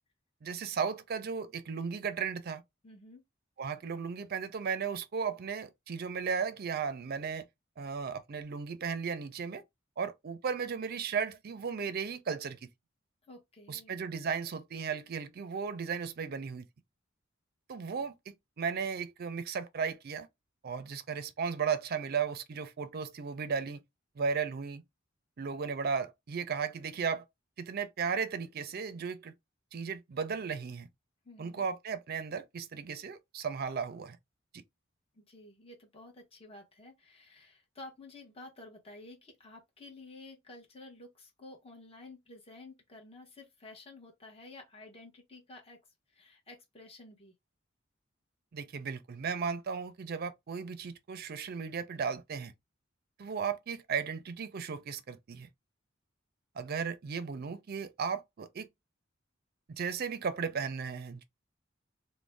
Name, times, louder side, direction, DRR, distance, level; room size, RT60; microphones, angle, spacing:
voice 1, 0.4-2.6 3.6-7.5 7.8-9.6 10.0-12.6 13.7-16.7 17.7-20.3 20.6-23.8 24.2-24.8 25.4-27.3 27.6-29.3 29.7-30.9 31.4-34.2 34.5-34.6 48.5-52.5 53.2-55.5 56.6-58.7 59.7-61.2, right 6 dB, 50° right, 0.4 m, -35 dB
voice 2, 2.8-3.2 13.3-14.0 31.2-31.6 35.1-45.8 46.1-47.3, left 2 dB, 30° left, 0.9 m, -52 dB
2.5 x 2.1 x 3.2 m
head